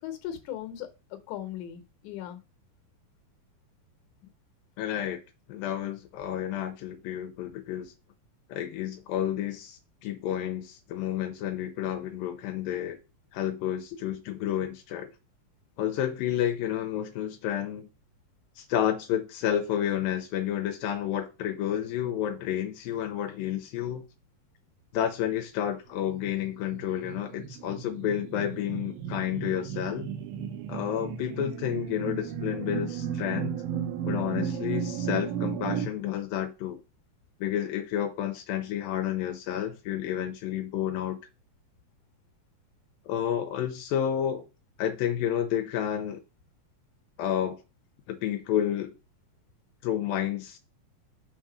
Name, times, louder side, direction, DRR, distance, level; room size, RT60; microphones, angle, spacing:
voice 1, 0.0-2.4 14.0-14.1, left 11 dB, 70° left, 2.3 m, -38 dB
voice 2, 4.8-5.2 5.5-7.9 8.5-13.0 13.3-15.1 15.8-17.9 18.6-24.0 24.9-30.1 30.7-33.6 34.1-36.8 37.4-41.2 43.1-44.4 44.8-46.2 47.2-47.6 48.1-49.0 49.8-50.6, left 10 dB, 85° left, 2.3 m, -30 dB
sound 1, 26.1-35.9, right 8 dB, 90° right, 2.7 m, -34 dB
5.9 x 3.7 x 5.0 m
omnidirectional pair, 4.1 m